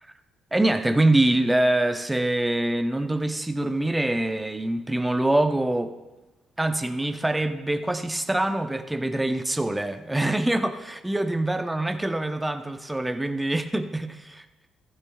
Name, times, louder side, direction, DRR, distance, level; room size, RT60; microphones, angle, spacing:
voice 1, 0.5-6.0 6.6-14.4, right 1 dB, 10° right, 8 dB, 0.8 m, -24 dB
14.5 x 12.0 x 2.4 m, 1.1 s
hypercardioid pair, 50°, 0 cm